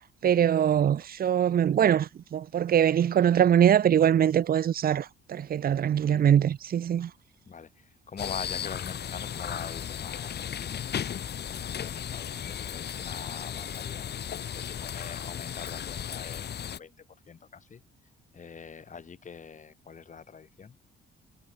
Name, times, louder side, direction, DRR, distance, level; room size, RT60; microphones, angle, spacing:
voice 1, 0.2-7.1, right 9 dB, 50° right, 0.8 m, -23 dB
voice 2, 7.5-11.0 11.5-17.8 18.3-20.8, left 6 dB, 40° left, 2.1 m, -44 dB
sound 1, 8.2-16.8, left 9 dB, 55° left, 2.3 m, -35 dB
cardioid pair, 90°, 20 cm